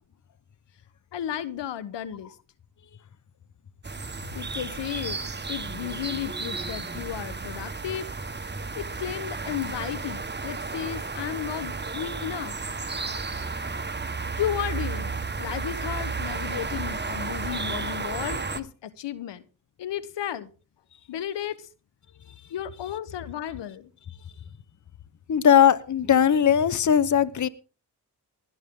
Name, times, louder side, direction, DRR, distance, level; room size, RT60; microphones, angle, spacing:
voice 1, 1.1-2.3 4.3-5.2 5.5-8.1 8.7-12.5 14.3-19.4 19.8-20.5 21.1-21.7 22.5-23.9, left 10 dB, 80° left, 17 dB, 1.2 m, -33 dB
sound 1, 3.8-18.6, right 4 dB, 25° right, 1.5 m, -33 dB
voice 2, 25.3-27.5, left 8 dB, 45° left, 18 dB, 1.0 m, -19 dB
19.5 x 12.0 x 3.8 m, 0.36 s
cardioid pair, 55°, 42 cm